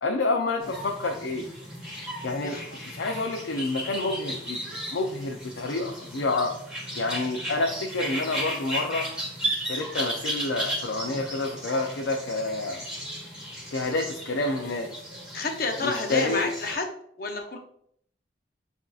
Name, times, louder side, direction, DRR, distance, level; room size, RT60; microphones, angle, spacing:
voice 1, 0.0-1.5 2.2-2.6 2.8-4.6 4.9-6.5 7.0-9.1 9.5-12.8 13.7-14.9 15.8-16.5, left 2 dB, 90° left, 1 dB, 0.5 m, -28 dB
sound 1, 0.6-16.7, right 1 dB, 5° right, 1.4 m, -35 dB
voice 2, 2.4-2.8 15.3-16.9 17.2-17.6, left 3 dB, 50° left, 3 dB, 0.7 m, -30 dB
7.5 x 2.7 x 2.4 m, 0.68 s
head